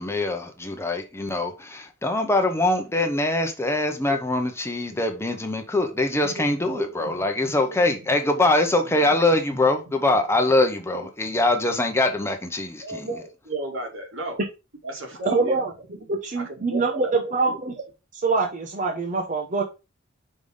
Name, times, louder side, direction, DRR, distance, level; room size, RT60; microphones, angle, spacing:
voice 1, 0.0-13.1, left 2 dB, 15° left, 0.9 m, -23 dB
voice 2, 6.2-8.2 8.8-9.1 9.5-9.7 10.1-10.2 10.5-10.6 10.9-11.4 12.8-14.4 14.8-15.6 15.9-16.0 16.4-17.6, right 1 dB, 80° right, 2.0 m, -35 dB
voice 3, 15.2-15.7 16.1-17.7 18.2-19.6, right 3 dB, 40° right, 0.8 m, -24 dB
5.4 x 3.4 x 5.3 m
head